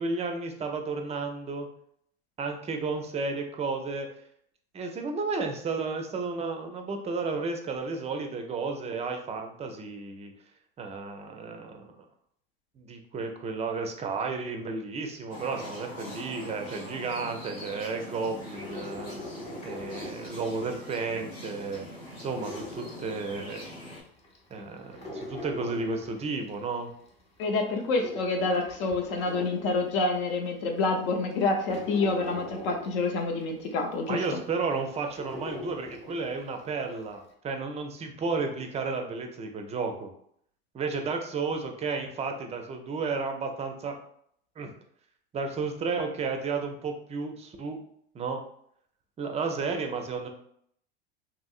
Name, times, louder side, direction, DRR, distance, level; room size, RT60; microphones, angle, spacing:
voice 1, 0.0-1.7 2.4-4.1 4.7-10.3 10.8-12.0 12.8-19.2 19.6-21.8 22.2-23.7 24.5-26.9 34.1-40.1 40.7-44.0 44.6-44.7 45.3-47.8 48.1-48.4 49.2-50.3, right 4 dB, 20° right, 5 dB, 0.5 m, -32 dB
sound 1, 15.3-24.0, left 1 dB, 85° left, 1.4 m, -43 dB
sound 2, 18.4-21.0 21.4-23.7 24.2-26.8 27.2-30.3 30.8-30.9 31.3-36.5 36.8-36.9, left 2 dB, 20° left, 0.7 m, -42 dB
voice 2, 27.4-34.2, left 3 dB, 60° left, 3 dB, 0.7 m, -27 dB
2.9 x 2.6 x 2.4 m, 0.66 s
hypercardioid pair, 90°, 29 cm